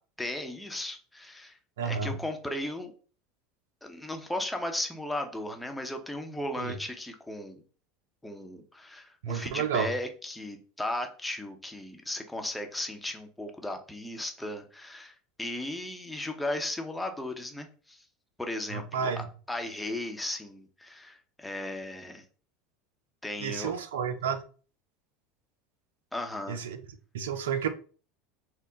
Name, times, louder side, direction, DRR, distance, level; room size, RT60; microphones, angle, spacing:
voice 1, 0.2-2.9 3.8-7.6 8.2-18.0 18.4-22.2 23.2-23.7 26.1-26.6, left 1 dB, 5° left, 0.8 m, -36 dB
voice 2, 1.8-2.2 6.6-6.8 9.2-9.9 18.7-19.3 23.4-24.4 26.5-26.8 27.1-27.7, right 7 dB, 75° right, 0.5 m, -31 dB
3.7 x 2.1 x 3.8 m
hypercardioid pair, 80°, 0 cm